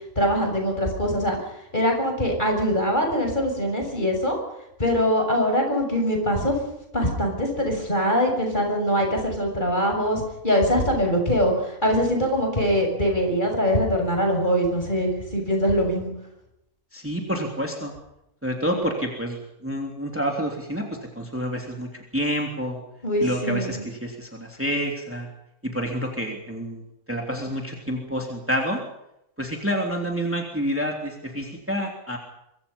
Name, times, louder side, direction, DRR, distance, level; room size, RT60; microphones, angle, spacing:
voice 1, 0.2-1.4 1.7-4.4 4.8-6.6 6.9-16.1 23.0-23.9, equal, 30° left, 2 dB, 6.9 m, -23 dB
voice 2, 16.9-17.9 18.4-20.9 21.1-22.8 23.2-25.3 25.6-28.8 29.4-32.2, equal, 10° right, 1 dB, 3.3 m, -28 dB
24.5 x 24.5 x 5.6 m, 0.82 s
omnidirectional pair, 1.5 m